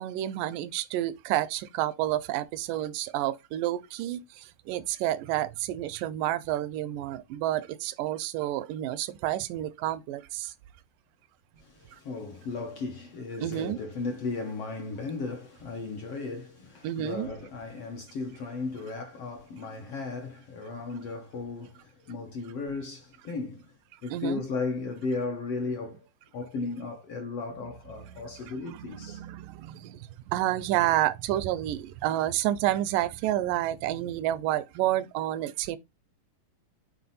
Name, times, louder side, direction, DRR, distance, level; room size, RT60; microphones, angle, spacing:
voice 1, 0.0-10.5 11.9-12.0 13.4-13.8 16.8-17.3 24.1-24.4 28.0-35.8, right 13 dB, 85° right, 2.1 m, -30 dB
voice 2, 11.6-23.7 24.0-26.1 26.3-29.2, left 3 dB, 65° left, 1.6 m, -35 dB
5.9 x 4.5 x 4.0 m
omnidirectional pair, 3.8 m